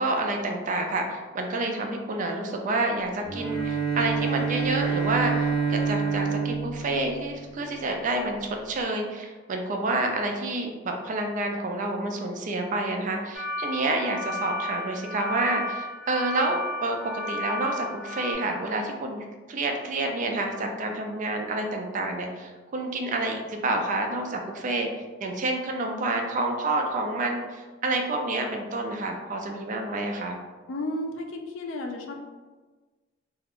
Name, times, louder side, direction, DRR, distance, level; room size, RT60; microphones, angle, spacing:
voice 1, 0.0-17.0 17.3-24.9 25.2-30.4, right 2 dB, 40° right, 3 dB, 0.4 m, -29 dB
Bowed string instrument, 3.3-7.9, right 5 dB, 25° left, 1.0 m, -28 dB
sound 1, 13.3-18.3, left 1 dB, ahead, 0.9 m, -33 dB
voice 2, 30.7-32.2, left 1 dB, 75° left, 4 dB, 0.4 m, -33 dB
2.4 x 2.2 x 3.4 m, 1.3 s
head